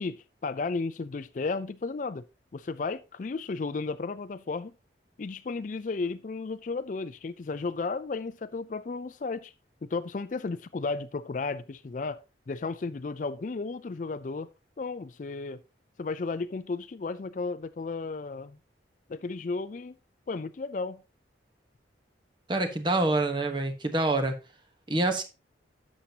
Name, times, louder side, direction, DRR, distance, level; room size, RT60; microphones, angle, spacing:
voice 1, 0.0-2.3 2.5-4.7 5.2-9.5 9.8-12.2 12.5-14.5 14.8-15.6 16.0-18.6 19.1-20.0 20.3-21.0, left 4 dB, 45° left, 0.4 m, -34 dB
voice 2, 22.5-24.4 24.9-25.2, right 2 dB, 25° right, 1.2 m, -26 dB
11.5 x 7.3 x 2.8 m
head